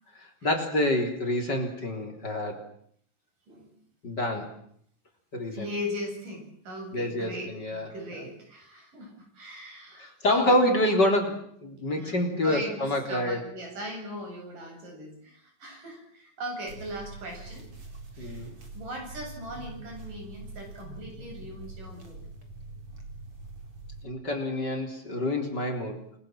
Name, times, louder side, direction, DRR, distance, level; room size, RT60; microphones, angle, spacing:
voice 1, 0.2-2.7 4.0-4.5 5.3-5.7 6.9-7.9 10.0-13.4 18.2-18.6 24.0-26.2, left 1 dB, 30° left, 3 dB, 4.0 m, -27 dB
voice 2, 5.5-10.6 11.9-17.7 18.2-18.5 18.7-22.2, equal, 80° right, 2 dB, 9.6 m, -39 dB
sound 1, 16.7-24.1, right 3 dB, 45° right, 5.1 m, -44 dB
28.5 x 21.0 x 7.7 m, 0.64 s
omnidirectional pair, 3.7 m